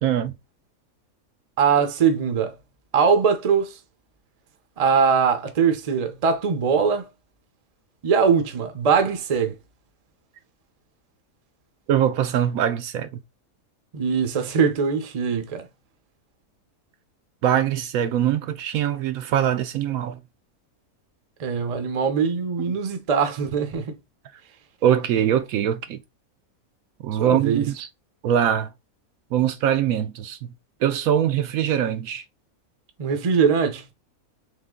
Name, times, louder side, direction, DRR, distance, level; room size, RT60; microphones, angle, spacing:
voice 1, 0.0-0.4 11.9-13.2 17.4-20.2 24.8-26.0 27.0-27.9 28.2-28.7 29.3-30.5 30.8-32.2, right 10 dB, 75° right, 1.0 m, -22 dB
voice 2, 1.6-2.5 2.9-3.8 4.8-7.1 8.0-9.6 13.9-15.7 21.4-23.9 27.2-27.7 33.0-33.9, right 6 dB, 40° right, 0.6 m, -21 dB
3.7 x 3.2 x 3.7 m
omnidirectional pair, 1.5 m